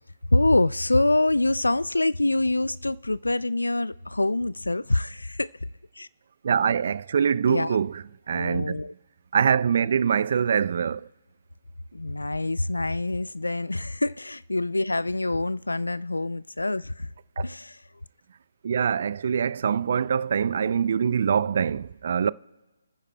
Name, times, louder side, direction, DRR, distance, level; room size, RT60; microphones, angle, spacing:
voice 1, 0.3-5.5 6.0-6.1 7.5-7.8 8.3-8.9 11.9-17.1 17.4-17.8, left 2 dB, 90° left, 0.3 m, -25 dB
voice 2, 6.4-8.9 9.3-11.1 17.4-17.5 18.6-22.3, right 7 dB, 50° right, 0.3 m, -24 dB
26.5 x 9.8 x 2.2 m
figure-of-eight pair, 145°, 0 cm